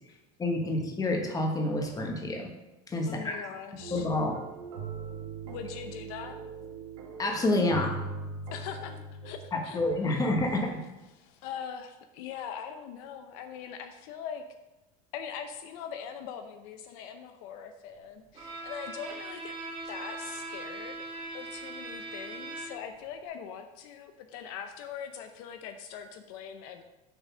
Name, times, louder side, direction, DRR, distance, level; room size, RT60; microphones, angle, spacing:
voice 1, 0.4-2.5 2.9-3.5 3.9-4.3 7.2-8.0 9.5-10.8, left 2 dB, 20° left, 2 dB, 1.3 m, -28 dB
voice 2, 3.0-4.1 5.4-6.4 8.5-9.8 10.1-10.3 11.1-14.4 15.1-19.5 19.8-21.0 21.3-26.8, left 8 dB, 75° left, 7 dB, 0.7 m, -42 dB
sound 1, 3.8-9.3, right 4 dB, 90° right, 1.6 m, -40 dB
Bowed string instrument, 18.3-23.0, right 2 dB, 30° right, 2.4 m, -40 dB
6.8 x 4.1 x 6.1 m, 1.0 s
supercardioid pair, 130°, 19 cm